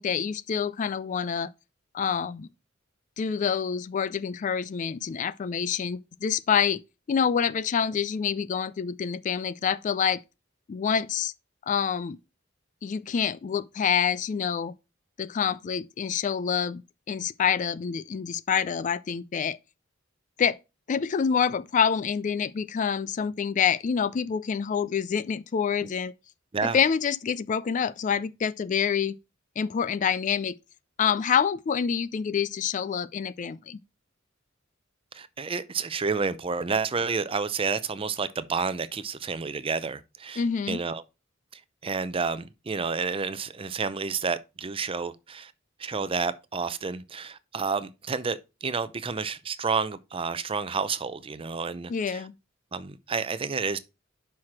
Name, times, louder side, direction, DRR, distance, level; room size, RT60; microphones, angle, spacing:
voice 1, 0.0-1.5 1.9-2.5 3.2-6.8 7.1-10.2 10.7-11.3 11.7-12.2 12.8-14.7 15.2-16.8 17.1-19.6 20.4-20.6 20.9-26.1 26.6-29.2 29.6-30.6 31.0-33.8 40.4-40.8 51.9-52.3, left 7 dB, 40° left, 0.3 m, -27 dB
voice 2, 35.1-41.0 41.5-45.5 45.8-52.2 52.7-53.8, right 5 dB, 30° right, 0.5 m, -30 dB
5.8 x 4.8 x 5.8 m
head